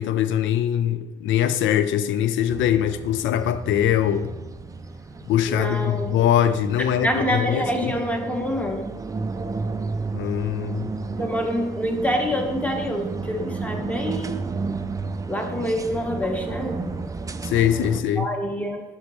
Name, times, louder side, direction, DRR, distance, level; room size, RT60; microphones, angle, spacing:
voice 1, 0.0-4.3 5.3-7.9 10.1-10.9 17.4-18.3, left 10 dB, 75° left, 0.4 m, -22 dB
sound 1, 2.5-18.0, right 3 dB, 15° right, 0.3 m, -32 dB
voice 2, 5.5-6.1 7.0-8.9 11.2-14.4 15.2-16.8 18.2-18.8, equal, 5° left, 1.0 m, -26 dB
6.7 x 5.5 x 3.0 m
cardioid pair, 90°, 20 cm